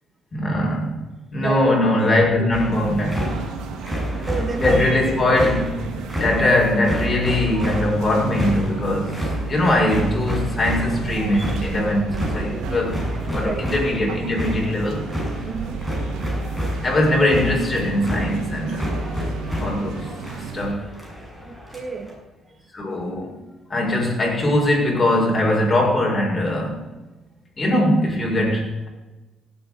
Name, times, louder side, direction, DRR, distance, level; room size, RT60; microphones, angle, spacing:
voice 1, 0.3-1.0 1.3-3.3 4.6-5.7 6.1-9.2 9.4-13.0 13.3-15.1 16.8-18.9 19.6-20.1 20.5-20.9 22.7-23.3 23.7-26.8 27.6-28.9, left 1 dB, 25° left, -2 dB, 6.8 m, -21 dB
voice 2, 1.4-1.7 2.4-2.5 4.3-5.0 12.5-13.7 15.4-15.8 21.1-22.1, right 4 dB, 30° right, 6 dB, 2.5 m, -31 dB
sound 1, 2.5-22.1, equal, ahead, 7.4 m, -29 dB
sound 2, 2.7-20.7, right 6 dB, 85° right, 1.9 m, -34 dB
17.0 x 9.1 x 8.2 m, 1.1 s
cardioid pair, 90°, 0 cm